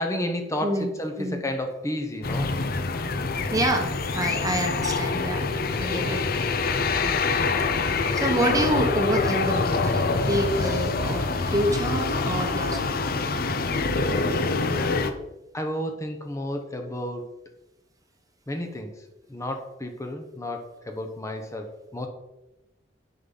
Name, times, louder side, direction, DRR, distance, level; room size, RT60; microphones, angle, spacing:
voice 1, 0.0-2.5 5.9-6.5 7.0-7.8 15.5-17.3 18.5-22.1, left 1 dB, 15° left, 4 dB, 0.9 m, -32 dB
voice 2, 0.6-0.9 1.2-1.4 3.5-5.4 5.8-6.2 8.1-13.0, right 1 dB, 20° right, 4 dB, 1.0 m, -27 dB
sound 1, 2.2-15.1, left 3 dB, 55° left, 0.7 m, -25 dB
9.4 x 5.6 x 3.9 m, 0.97 s
head